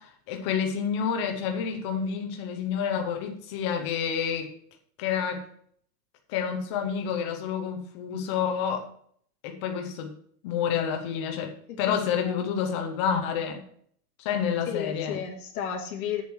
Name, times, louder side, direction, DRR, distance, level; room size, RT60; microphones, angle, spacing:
voice 1, 0.0-4.5 5.0-5.4 6.3-8.9 9.4-10.1 10.4-13.6 14.2-15.2, left 7 dB, 20° left, 4 dB, 0.6 m, -29 dB
voice 2, 12.2-13.2 14.7-16.2, left 8 dB, 60° left, -1 dB, 1.8 m, -35 dB
7.8 x 7.0 x 4.6 m, 0.62 s
supercardioid pair, 170°, 48 cm